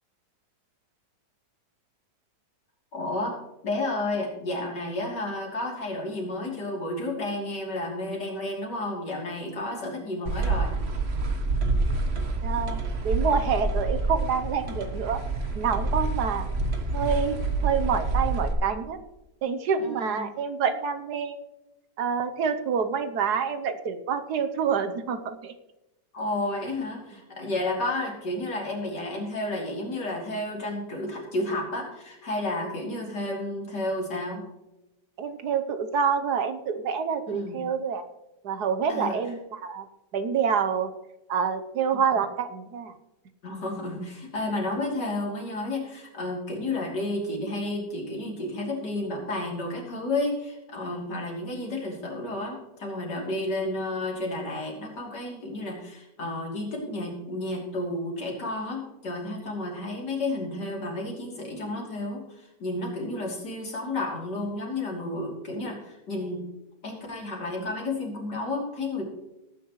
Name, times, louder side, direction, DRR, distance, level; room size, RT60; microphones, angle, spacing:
voice 1, 2.9-3.4 3.6-10.7 19.8-20.3 26.1-34.4 37.3-37.6 38.9-39.2 43.4-66.4 66.8-69.0, left 2 dB, 70° left, -1 dB, 3.6 m, -31 dB
sound 1, 10.3-18.5, right 2 dB, 40° right, 1.4 m, -27 dB
voice 2, 12.4-15.2 15.6-16.5 16.9-17.4 17.6-19.0 19.4-21.4 22.0-25.5 35.2-38.0 38.4-39.9 40.1-40.9 41.3-42.9, right 6 dB, 70° right, 9 dB, 1.4 m, -27 dB
18.0 x 9.6 x 3.1 m, 0.95 s
omnidirectional pair, 1.9 m